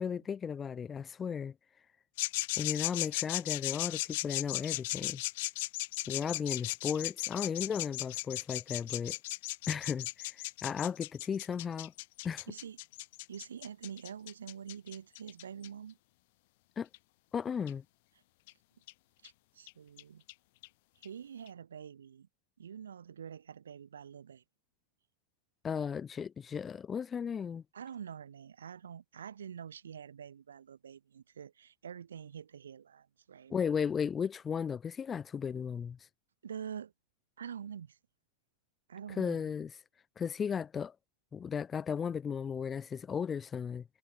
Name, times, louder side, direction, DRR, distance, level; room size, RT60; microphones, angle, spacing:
voice 1, 0.0-1.5 2.6-5.2 6.1-9.2 9.7-11.9 12.2-12.5 16.8-16.9 17.3-17.8 25.6-27.6 33.5-36.0 39.2-39.7 40.2-40.9 41.3-43.8, left 7 dB, 20° left, 1.4 m, -35 dB
sound 1, 2.2-15.7 16.9-17.0 17.7-17.8 18.5-18.6 18.9-19.0 19.2-19.3 19.7-19.8 20.0-20.1 20.3-20.4 20.6-20.7 21.0-21.1 21.5-21.6, left 21 dB, 50° left, 0.6 m, -36 dB
voice 2, 12.5-12.8 13.3-16.0 19.2-20.2 21.0-22.3 22.6-24.4 27.7-33.6 36.4-36.9 37.4-38.0 38.9-39.4, right 8 dB, 65° right, 5.9 m, -46 dB
figure-of-eight pair, 90°, 0 cm